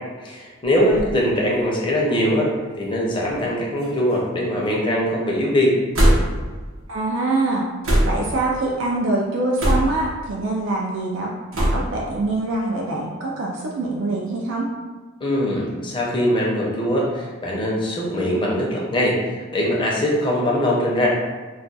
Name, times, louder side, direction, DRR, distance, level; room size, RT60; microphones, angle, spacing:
voice 1, 0.2-5.7 15.2-21.1, equal, 25° left, -3 dB, 0.5 m, -22 dB
sound 1, 0.6-1.1 2.0-2.1 3.3-3.5 3.8-4.4 5.9-6.5 7.8-8.4 9.6-10.1 11.5-12.0, equal, 85° right, 0.7 m, -20 dB
voice 2, 0.9-1.3 6.9-7.6 8.0-14.7, right 2 dB, 65° right, -2 dB, 0.4 m, -24 dB
2.3 x 2.2 x 3.9 m, 1.4 s
head